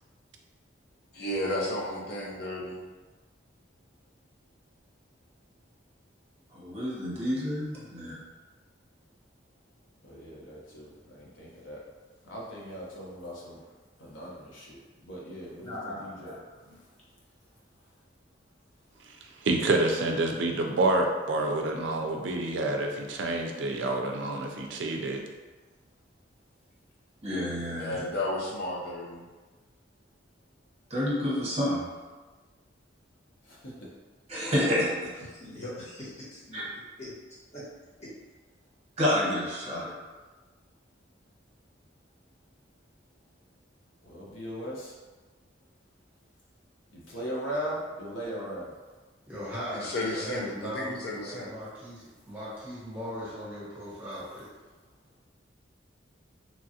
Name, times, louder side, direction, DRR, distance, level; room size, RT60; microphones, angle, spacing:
voice 1, 1.2-2.6 27.8-29.2 49.7-51.5, left 1 dB, 55° left, -3 dB, 0.6 m, -32 dB
voice 2, 6.5-8.1 27.2-28.0 30.9-31.8 34.3-34.9 36.5-36.6 39.0-39.9, left 1 dB, 35° right, -6 dB, 0.8 m, -29 dB
voice 3, 10.0-11.8 12.2-13.6 14.0-16.3 33.5-33.9 44.0-45.0 46.9-48.7, equal, 85° left, -5 dB, 0.8 m, -39 dB
voice 4, 15.6-16.8 35.3-36.7 37.0-37.1 37.5-37.6 38.0-38.1, left 1 dB, 35° left, -9 dB, 1.1 m, -42 dB
voice 5, 19.4-25.2, right 2 dB, 65° right, 2 dB, 0.4 m, -28 dB
voice 6, 49.3-54.5, equal, 10° right, -10 dB, 1.1 m, -39 dB
3.0 x 2.4 x 2.7 m, 1.3 s
head